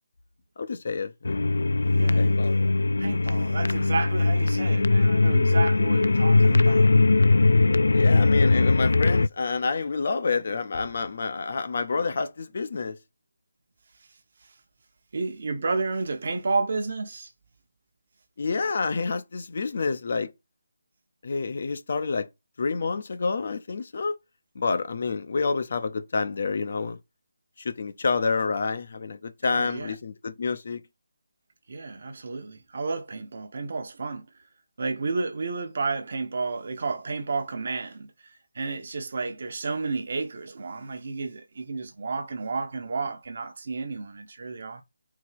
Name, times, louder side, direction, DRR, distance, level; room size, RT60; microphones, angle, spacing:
voice 1, 0.6-1.4 2.2-2.8 7.9-13.0 18.4-20.3 21.2-22.3 22.6-24.1 24.6-27.0 27.6-30.8, left 4 dB, 35° left, 0.6 m, -28 dB
sound 1, 1.2-9.3, left 3 dB, 80° left, 0.4 m, -20 dB
voice 2, 2.0-2.3 3.0-6.9 15.1-17.3 29.5-29.9 31.7-34.3 34.8-38.1 38.5-44.8, right 4 dB, 35° right, 1.0 m, -31 dB
4.8 x 4.0 x 5.7 m
hypercardioid pair, 180°, 0 cm